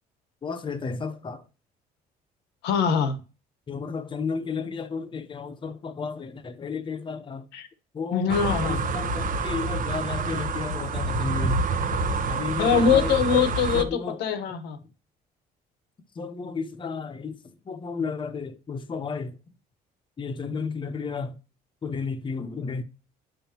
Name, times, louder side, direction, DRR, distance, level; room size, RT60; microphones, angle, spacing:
voice 1, 0.4-1.5 3.7-7.5 7.9-8.4 8.7-11.6 12.3-13.2 13.7-14.2 16.1-19.6 20.2-21.4 21.8-22.8, left 5 dB, 30° left, 0.9 m, -33 dB
voice 2, 2.6-3.2 7.5-7.6 8.1-8.8 12.6-14.8, left 7 dB, 90° left, 1.2 m, -23 dB
sound 1, 8.3-13.8, right 3 dB, 55° right, 1.1 m, -27 dB
9.7 x 5.5 x 2.9 m
cardioid pair, 110°, 17 cm